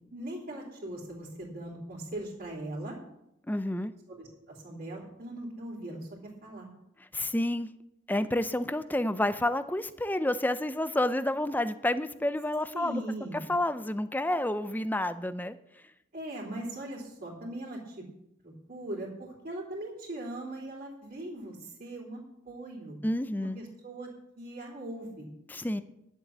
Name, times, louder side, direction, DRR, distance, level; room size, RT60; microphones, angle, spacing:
voice 1, 0.1-3.0 4.1-6.7 12.7-13.5 16.1-18.0 18.4-23.0 23.4-24.1 24.4-25.3, right 1 dB, 45° right, -6 dB, 3.2 m, -40 dB
voice 2, 3.5-3.9 7.1-7.7 8.1-13.0 13.3-15.6 23.0-23.6 25.5-25.8, left 1 dB, 10° left, 12 dB, 0.6 m, -29 dB
11.0 x 7.3 x 8.3 m, 0.82 s
head